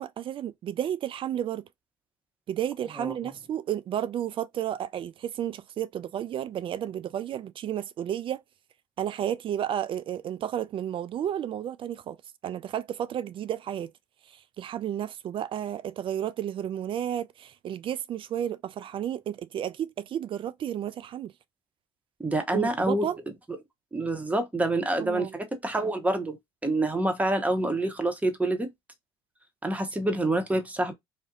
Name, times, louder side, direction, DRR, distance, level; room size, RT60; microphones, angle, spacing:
voice 1, 0.0-1.6 2.5-8.4 9.0-12.2 12.4-13.9 14.3-21.3 22.5-23.2 25.0-25.3, right 10 dB, 40° right, 0.4 m, -32 dB
voice 2, 22.2-23.1 23.9-26.4 26.6-28.7 29.6-30.9, right 1 dB, 10° right, 0.9 m, -27 dB
2.6 x 2.1 x 3.7 m
hypercardioid pair, 60°, 13 cm